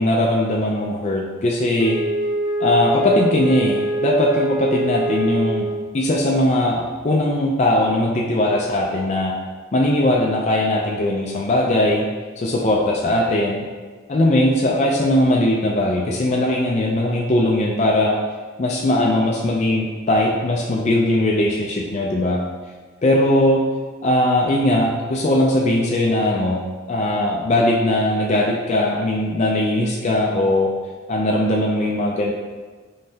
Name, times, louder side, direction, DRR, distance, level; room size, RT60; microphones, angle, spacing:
voice 1, 0.0-2.0 2.6-5.7 5.9-9.3 9.7-12.1 12.4-13.7 14.1-18.2 18.6-22.4 23.0-23.6 24.0-26.6 26.9-30.7 31.1-32.3, left 1 dB, 35° left, -2 dB, 0.4 m, -19 dB
Wind instrument woodwind instrument, 1.8-6.0, right 1 dB, 15° right, 0.7 m, -24 dB
5.4 x 3.2 x 2.7 m, 1.4 s
head